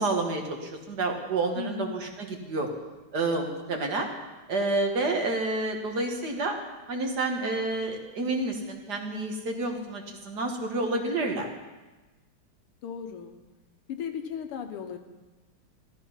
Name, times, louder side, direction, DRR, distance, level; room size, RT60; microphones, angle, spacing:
voice 1, 0.0-2.7 3.1-4.1 4.5-6.5 6.9-11.5, right 2 dB, 50° right, 2 dB, 1.9 m, -29 dB
voice 2, 1.6-2.0 12.8-13.4 13.9-15.0, left 8 dB, 85° left, 6 dB, 2.0 m, -36 dB
14.0 x 13.0 x 5.6 m, 1.2 s
omnidirectional pair, 2.4 m